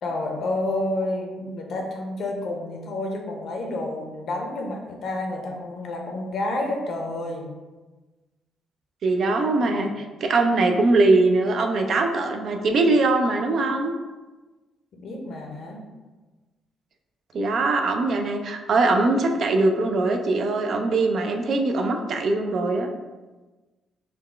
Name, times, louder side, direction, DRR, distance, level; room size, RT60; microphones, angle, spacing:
voice 1, 0.0-7.5 9.8-9.9 14.9-15.8, left 2 dB, 65° left, 1 dB, 0.6 m, -29 dB
voice 2, 9.0-13.9 17.3-22.9, right 2 dB, 60° right, 4 dB, 0.4 m, -21 dB
3.9 x 2.2 x 3.3 m, 1.2 s
cardioid pair, 100°, 0 cm